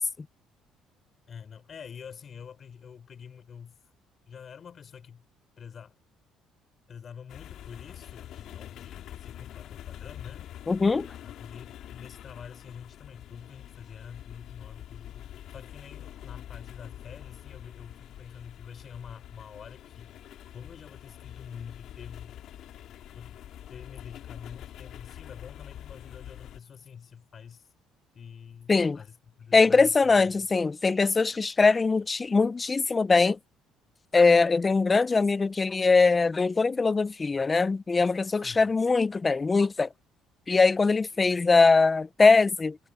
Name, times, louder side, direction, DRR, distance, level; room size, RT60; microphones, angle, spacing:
voice 1, 1.3-3.7 4.3-5.2 5.6-5.9 6.9-10.5 11.2-20.1 20.5-22.4 23.1-27.7 28.1-30.5 38.3-38.7, left 7 dB, 45° left, 6.9 m, -46 dB
sound 1, 7.3-26.6, left 11 dB, 65° left, 2.9 m, -45 dB
voice 2, 10.7-11.1 28.7-29.0 29.5-33.4 34.1-39.9 40.5-42.8, left 4 dB, 25° left, 0.8 m, -22 dB
cardioid pair, 100°, 0 cm